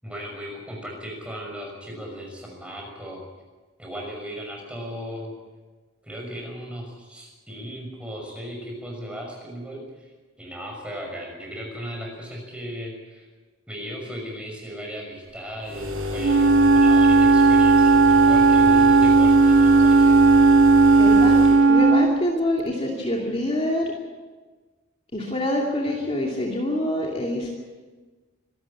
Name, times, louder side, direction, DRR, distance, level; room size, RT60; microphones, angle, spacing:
voice 1, 0.0-3.2 3.8-5.3 6.0-10.1 10.4-13.3 13.7-20.2 25.9-26.0, equal, 5° right, -1 dB, 5.9 m, -36 dB
sound 1, 15.6-21.7, left 3 dB, 80° right, 7.3 m, -29 dB
Wind instrument woodwind instrument, 16.2-22.2, right 4 dB, 55° right, 0.5 m, -15 dB
voice 2, 21.0-23.9 25.1-27.5, left 1 dB, 30° left, -1 dB, 2.6 m, -26 dB
25.5 x 13.0 x 8.7 m, 1.3 s
head